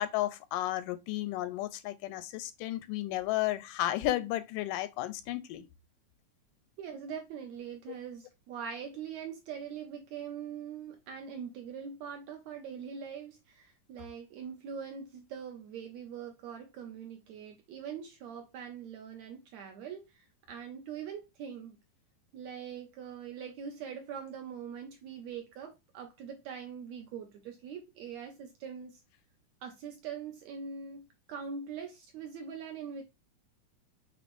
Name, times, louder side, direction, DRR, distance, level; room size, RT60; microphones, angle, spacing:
voice 1, 0.0-5.6, left 14 dB, 85° left, 2.1 m, -33 dB
voice 2, 6.8-21.8 22.3-29.0 29.6-31.0 31.3-33.0, right 7 dB, 75° right, 1.7 m, -42 dB
7.0 x 2.9 x 2.5 m
omnidirectional pair, 3.7 m